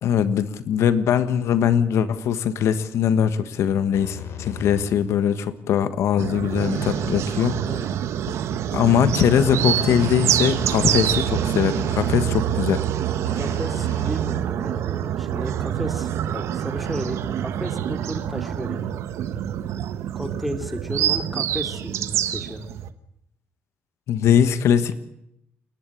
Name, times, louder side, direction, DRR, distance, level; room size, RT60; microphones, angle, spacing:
voice 1, 0.0-7.6 8.7-12.8 24.1-25.0, left 8 dB, 85° left, 13 dB, 1.4 m, -21 dB
sound 1, 3.9-5.2 6.5-7.2 8.9-12.5 13.2-14.7, left 5 dB, 65° left, 4.1 m, -37 dB
sound 2, 6.2-22.9, right 10 dB, 90° right, 1.2 m, -26 dB
voice 2, 7.5-7.8 13.3-18.9 19.3-19.5 20.1-22.7, equal, ahead, 7 dB, 2.7 m, -34 dB
29.5 x 11.0 x 8.5 m, 0.79 s
cardioid pair, 120°, 5 cm